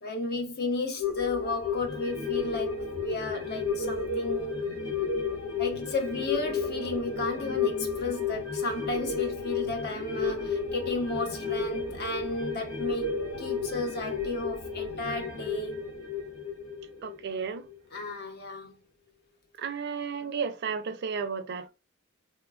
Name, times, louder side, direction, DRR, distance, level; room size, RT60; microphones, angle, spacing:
voice 1, 0.0-4.6 5.6-15.8 17.9-18.7, left 2 dB, 50° left, 0.7 m, -33 dB
sound 1, 1.0-17.8 18.1-18.2, left 5 dB, 85° left, 1.2 m, -32 dB
voice 2, 17.0-17.7 19.6-21.7, right 6 dB, 55° right, 0.4 m, -33 dB
3.1 x 2.2 x 2.3 m
head